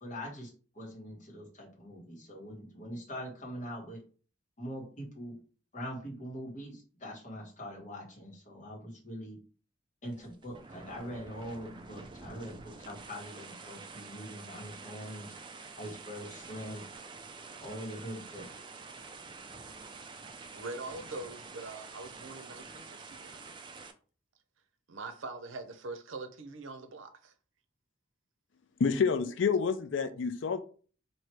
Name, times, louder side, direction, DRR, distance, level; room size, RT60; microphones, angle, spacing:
voice 1, 0.0-4.0 4.6-5.4 5.7-9.4 10.0-15.3 15.7-16.8 17.6-18.5, equal, 40° left, 1.4 m, -43 dB
sound 1, 10.0-23.9, right 4 dB, 25° right, 0.4 m, -48 dB
voice 2, 20.5-23.5 24.9-27.3, right 3 dB, 90° right, 0.6 m, -43 dB
voice 3, 28.8-30.6, left 5 dB, 75° left, 0.4 m, -28 dB
3.1 x 2.7 x 4.5 m
head